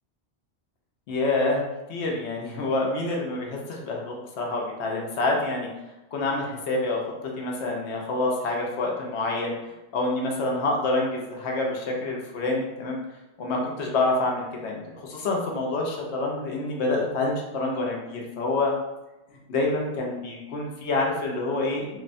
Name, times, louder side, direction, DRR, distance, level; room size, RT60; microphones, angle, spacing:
voice 1, 1.1-1.6 1.9-5.7 6.1-7.0 7.4-9.5 9.9-13.0 13.4-18.7 19.5-22.0, left 2 dB, 80° left, -1 dB, 0.9 m, -27 dB
2.9 x 2.1 x 2.5 m, 0.98 s
omnidirectional pair, 1.1 m